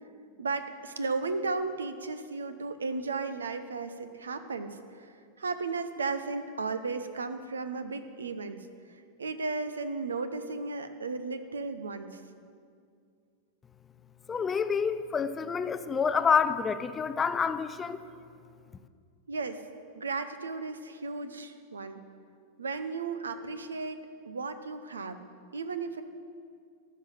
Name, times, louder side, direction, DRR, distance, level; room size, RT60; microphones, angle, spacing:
voice 1, 0.4-8.7 9.2-12.2 19.3-19.6 20.0-22.0 22.6-25.2 25.5-26.0, right 4 dB, 70° right, 10 dB, 0.7 m, -35 dB
voice 2, 14.3-18.0, left 6 dB, 20° left, 12 dB, 0.5 m, -28 dB
13.5 x 6.0 x 9.2 m, 2.3 s
figure-of-eight pair, 90°, 0 cm